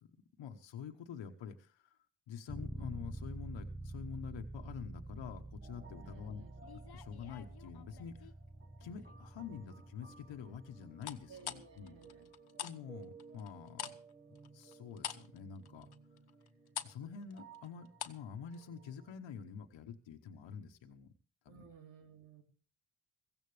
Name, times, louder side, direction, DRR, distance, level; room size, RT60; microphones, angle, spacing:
voice 1, 0.0-2.0 2.3-8.3 8.8-12.0 12.6-13.9 14.3-15.9 16.8-21.1 21.4-21.6, left 7 dB, 85° left, 5 dB, 1.2 m, -47 dB
sound 1, 2.5-12.2, right 2 dB, 5° right, 0.6 m, -48 dB
sound 2, 5.6-19.2, right 4 dB, 25° right, 1.7 m, -59 dB
voice 2, 5.9-6.6 11.3-12.3 21.5-22.4, right 6 dB, 90° right, 3 dB, 2.7 m, -57 dB
sound 3, 6.6-8.3 8.8-9.3 11.0-12.8 13.0-18.3 18.5-18.7, left 9 dB, 55° left, 1.2 m, -46 dB
16.0 x 15.5 x 3.3 m, 0.38 s
cardioid pair, 55°, 44 cm